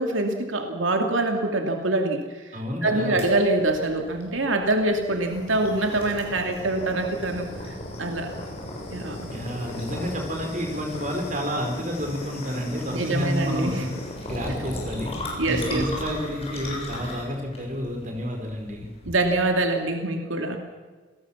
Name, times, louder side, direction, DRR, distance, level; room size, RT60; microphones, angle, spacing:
voice 1, 0.0-2.4 2.8-8.3 8.9-9.3 12.9-13.9 15.4-15.9 19.1-20.6, right 2 dB, 85° right, 4 dB, 2.5 m, -25 dB
voice 2, 2.5-3.2 9.3-13.9 14.2-15.1 15.5-18.9, equal, 40° right, 3 dB, 4.7 m, -30 dB
sound 1, 3.2-19.5, left 1 dB, 30° left, 7.3 m, -36 dB
27.0 x 19.0 x 7.2 m, 1.4 s
head